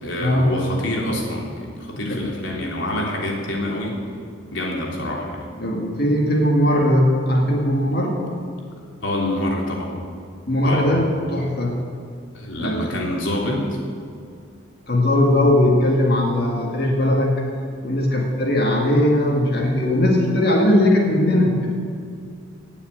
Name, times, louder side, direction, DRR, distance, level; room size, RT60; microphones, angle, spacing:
voice 1, 0.0-4.0 4.5-5.5 9.0-10.0 10.6-10.9 12.4-13.7, left 1 dB, 75° left, -2 dB, 3.4 m, -26 dB
voice 2, 1.9-2.2 5.6-8.2 10.5-11.8 12.6-12.9 14.9-17.4 17.8-21.7, left 1 dB, 55° left, 0 dB, 2.1 m, -19 dB
18.5 x 7.3 x 8.3 m, 2.3 s
head